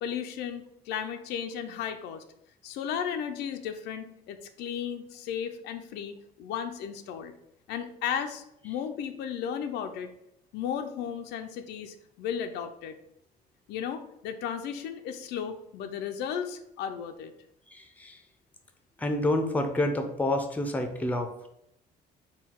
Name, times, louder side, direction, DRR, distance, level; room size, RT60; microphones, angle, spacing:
voice 1, 0.0-2.2 2.6-7.3 7.7-10.1 10.5-12.9 13.7-17.3, left 8 dB, 80° left, 7 dB, 0.5 m, -35 dB
voice 2, 17.7-18.1 19.0-21.5, left 1 dB, 10° left, 5 dB, 0.5 m, -28 dB
3.8 x 2.3 x 4.4 m, 0.79 s
cardioid pair, 110°, 17 cm